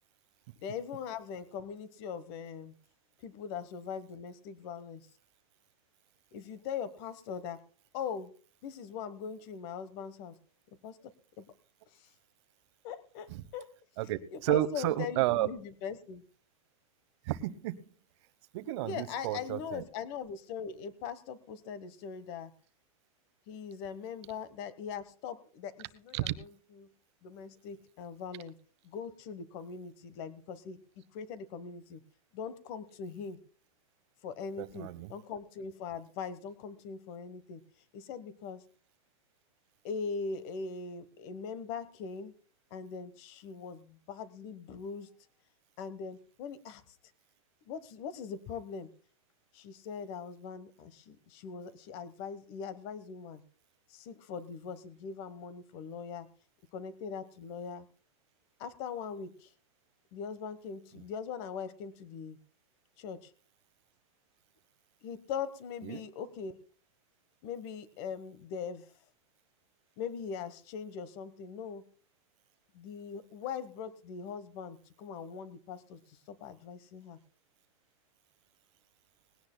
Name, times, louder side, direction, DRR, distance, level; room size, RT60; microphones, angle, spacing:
voice 1, 0.6-2.7 3.2-5.1 6.3-7.6 7.9-8.3 8.6-10.4 10.8-11.5 11.9-12.1 12.8-13.7 14.3-16.2 18.8-22.5 23.5-26.9 27.2-28.5 28.8-30.8 31.1-32.0 32.3-33.4 34.2-37.6 37.9-38.6 39.8-42.3 42.7-45.1 45.8-47.0 47.7-48.9 49.5-53.4 53.9-56.3 56.7-57.9 58.6-59.5 60.1-62.4 63.0-63.3 65.0-66.5 67.4-68.9 70.0-71.8 72.7-77.2, left 6 dB, 40° left, 15 dB, 1.1 m, -41 dB
voice 2, 14.0-15.5 17.2-17.9 18.5-19.8 26.1-26.3 34.6-35.1 65.8-66.0, right 15 dB, 50° right, 15 dB, 0.9 m, -32 dB
20.0 x 17.0 x 2.2 m, 0.41 s
supercardioid pair, 155°, 19 cm